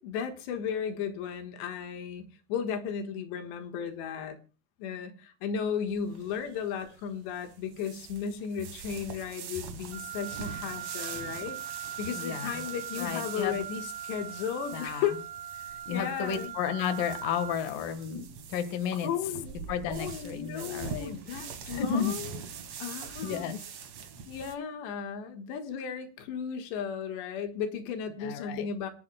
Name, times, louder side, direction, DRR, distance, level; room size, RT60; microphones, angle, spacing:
voice 1, 0.0-4.4 4.8-15.2 15.5-16.5 19.0-22.4 22.8-23.5 24.3-28.9, left 7 dB, 85° left, 6 dB, 3.5 m, -35 dB
sound 1, 5.9-24.5, right 7 dB, 60° right, 1.9 m, -44 dB
Wind instrument woodwind instrument, 9.9-17.7, right 10 dB, 80° right, 3.1 m, -40 dB
voice 2, 12.1-12.5 13.0-13.6 14.7-15.0 15.9-19.1 19.7-21.1 21.7-22.1 23.2-23.6 28.2-28.7, left 7 dB, 60° left, 8 dB, 2.9 m, -32 dB
27.5 x 11.0 x 2.2 m, 0.33 s
omnidirectional pair, 5.0 m